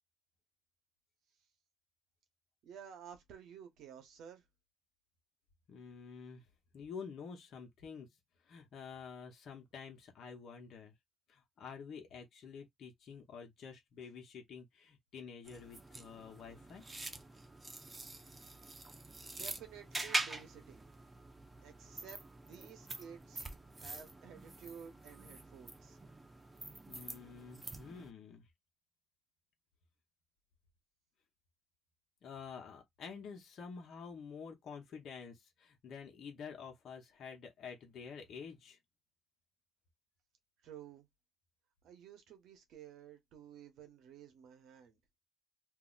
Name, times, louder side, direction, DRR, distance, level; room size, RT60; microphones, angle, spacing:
voice 1, 2.6-4.4 18.0-18.2 19.3-20.8 21.6-23.5 23.8-26.0 40.6-41.1 41.8-45.0, right 8 dB, 85° right, 1.0 m, -53 dB
voice 2, 5.7-6.5 6.7-8.1 8.4-10.9 11.3-16.8 26.9-28.5 32.2-38.8, left 6 dB, 65° left, 0.9 m, -49 dB
sound 1, 15.4-28.1, right 2 dB, 20° right, 0.7 m, -45 dB
2.7 x 2.1 x 3.8 m
cardioid pair, 90°, 0 cm